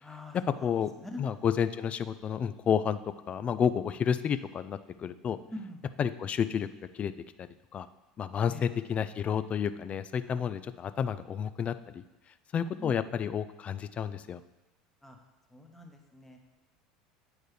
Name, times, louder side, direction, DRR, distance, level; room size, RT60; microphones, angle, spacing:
voice 1, 0.0-1.2 5.5-5.9 8.5-8.7 10.2-10.4 12.7-13.0 15.0-15.2 15.5-16.4, left 2 dB, 5° left, 2 dB, 1.1 m, -45 dB
voice 2, 0.6-0.9 1.2-3.0 3.3-5.4 6.0-6.7 6.9-7.1 7.4-7.5 7.7-7.9 8.2-12.0 12.5-14.4, left 8 dB, 35° left, 13 dB, 0.3 m, -30 dB
8.6 x 4.6 x 3.3 m, 1.1 s
hypercardioid pair, 80°, 4 cm